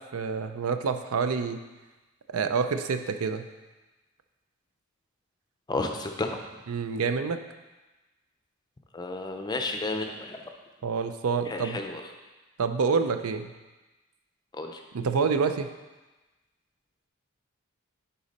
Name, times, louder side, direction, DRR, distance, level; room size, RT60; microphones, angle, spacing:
voice 1, 0.0-1.6 2.3-3.5 6.7-7.4 10.8-11.8 12.6-13.5 14.9-15.7, right 5 dB, 70° right, 8 dB, 0.5 m, -27 dB
voice 2, 5.7-6.4 8.9-10.4 11.5-12.0 14.5-14.8, left 2 dB, 20° left, 4 dB, 0.5 m, -32 dB
10.0 x 4.0 x 4.1 m, 1.2 s
head